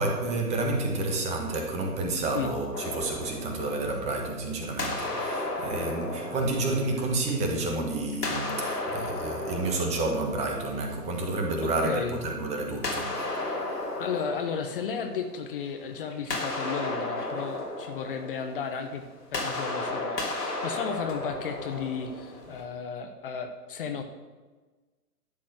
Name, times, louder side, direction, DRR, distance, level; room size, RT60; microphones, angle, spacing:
voice 1, 0.0-13.8, right 2 dB, 15° right, 2 dB, 1.1 m, -30 dB
sound 1, 2.7-4.4 4.8-7.6 8.1-11.0 12.8-15.6 15.9-22.6, left 2 dB, 80° left, 2.8 m, -34 dB
voice 2, 11.6-12.3 14.0-24.0, left 6 dB, 35° left, 5 dB, 0.8 m, -34 dB
11.5 x 4.2 x 7.9 m, 1.3 s
figure-of-eight pair, 125°, 46 cm